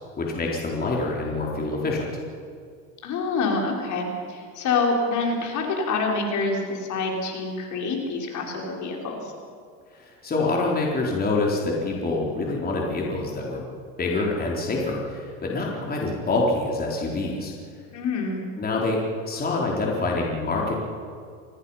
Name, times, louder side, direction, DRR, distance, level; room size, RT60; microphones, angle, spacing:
voice 1, 0.2-2.0 9.9-13.6 14.0-17.5 18.6-20.7, left 2 dB, 20° left, -2 dB, 4.1 m, -26 dB
voice 2, 3.0-9.3 17.9-18.4, left 3 dB, 45° left, 1 dB, 4.7 m, -26 dB
25.5 x 18.0 x 5.8 m, 2.2 s
supercardioid pair, 115°, 40 cm